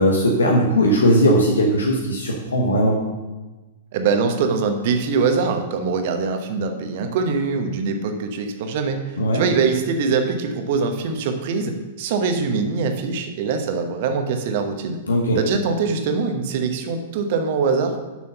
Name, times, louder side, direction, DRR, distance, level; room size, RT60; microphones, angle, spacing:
voice 1, 0.0-3.0 9.2-9.4 15.1-15.4, equal, 70° left, -1 dB, 1.1 m, -18 dB
voice 2, 3.9-15.0 15.3-18.0, right 5 dB, 50° right, 6 dB, 1.0 m, -23 dB
7.2 x 6.1 x 5.6 m, 1.2 s
figure-of-eight pair, 100°, 0 cm